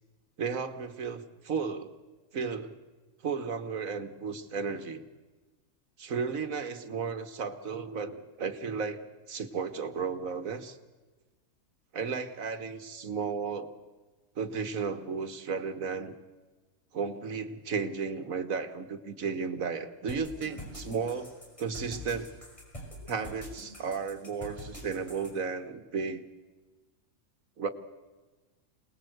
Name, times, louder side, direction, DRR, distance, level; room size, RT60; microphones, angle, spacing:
voice 1, 0.4-1.9 2.3-2.7 3.2-5.0 6.0-9.0 9.3-10.8 11.9-13.7 14.4-16.1 16.9-22.3 23.1-26.2 27.6-27.7, right 5 dB, 80° right, 9 dB, 1.9 m, -34 dB
sound 1, 20.1-25.3, left 1 dB, 25° left, 6.1 m, -44 dB
27.5 x 19.5 x 8.0 m, 1.3 s
omnidirectional pair, 1.4 m